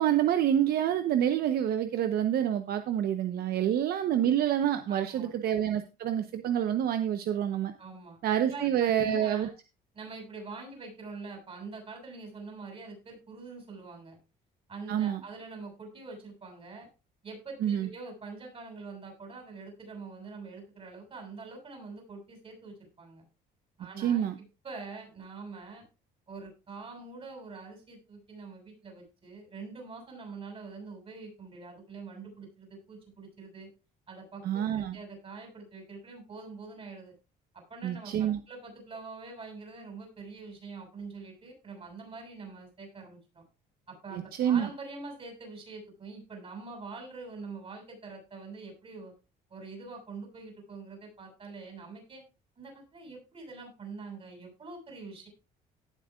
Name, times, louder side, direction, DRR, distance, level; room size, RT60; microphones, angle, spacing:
voice 1, 0.0-7.7 8.2-9.5 14.9-15.2 17.6-17.9 24.0-24.3 34.4-34.9 37.8-38.4 44.1-44.7, right 10 dB, 65° right, 9 dB, 0.9 m, -27 dB
voice 2, 4.9-5.3 7.8-9.5 9.9-14.2 14.7-16.9 17.2-23.2 23.8-25.9 26.3-33.7 34.1-37.2 37.5-43.5 43.9-49.1 49.5-52.2 52.6-55.3, right 4 dB, 35° right, 2 dB, 7.1 m, -45 dB
17.5 x 7.6 x 2.4 m, 0.30 s
cardioid pair, 110°, 17 cm